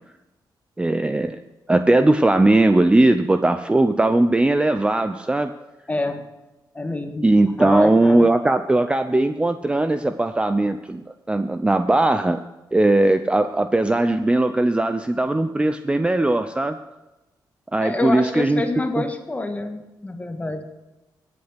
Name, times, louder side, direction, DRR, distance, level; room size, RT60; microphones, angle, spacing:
voice 1, 0.8-1.4 1.7-5.5 7.2-11.0 11.3-12.4 12.7-16.8 17.7-18.6 19.0-19.1, right 2 dB, 15° right, 9 dB, 0.6 m, -19 dB
voice 2, 5.9-6.2 6.7-8.3 17.8-20.6, left 2 dB, 20° left, 5 dB, 1.8 m, -27 dB
16.0 x 8.7 x 5.9 m, 1.0 s
cardioid pair, 110°, 8 cm